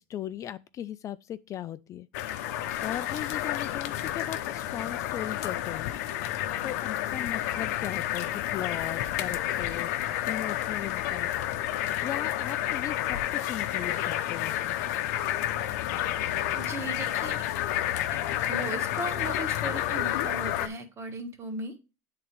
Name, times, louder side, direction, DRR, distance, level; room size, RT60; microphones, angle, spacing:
voice 1, 0.1-2.1 2.8-6.0 6.6-9.9 10.3-11.3 12.0-14.8, left 11 dB, 40° left, 0.4 m, -38 dB
sound 1, 2.1-20.7, left 13 dB, 80° left, 0.7 m, -30 dB
voice 2, 16.5-17.4 18.1-18.2 18.5-21.9, right 2 dB, 30° right, 1.6 m, -37 dB
8.5 x 3.8 x 4.5 m
supercardioid pair, 105°, 8 cm